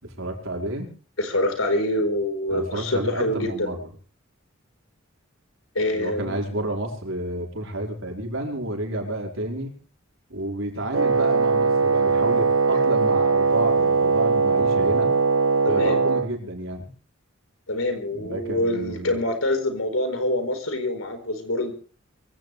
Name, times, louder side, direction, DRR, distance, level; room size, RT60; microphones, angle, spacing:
voice 1, 0.0-0.9 2.5-3.9 5.9-9.7 10.3-15.1 15.7-16.9 18.1-19.2, right 1 dB, 70° right, 1 dB, 5.1 m, -30 dB
voice 2, 1.2-3.7 5.7-6.4 15.6-16.0 17.7-21.7, left 1 dB, 90° left, 6 dB, 4.5 m, -25 dB
Wind instrument woodwind instrument, 10.9-16.3, right 4 dB, 85° right, 1.0 m, -20 dB
24.0 x 16.0 x 3.5 m, 0.38 s
head